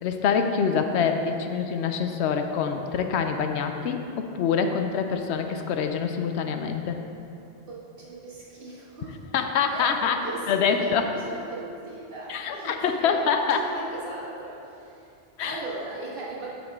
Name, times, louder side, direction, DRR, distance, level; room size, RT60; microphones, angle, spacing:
voice 1, 0.0-7.0 9.3-10.2 10.5-11.0 12.3-13.6 15.4-15.6, left 6 dB, 85° left, 6 dB, 0.9 m, -25 dB
voice 2, 7.7-9.2 9.7-15.1 15.4-16.5, right 2 dB, 55° right, -6 dB, 1.6 m, -38 dB
7.9 x 6.4 x 3.5 m, 2.7 s
omnidirectional pair, 1.1 m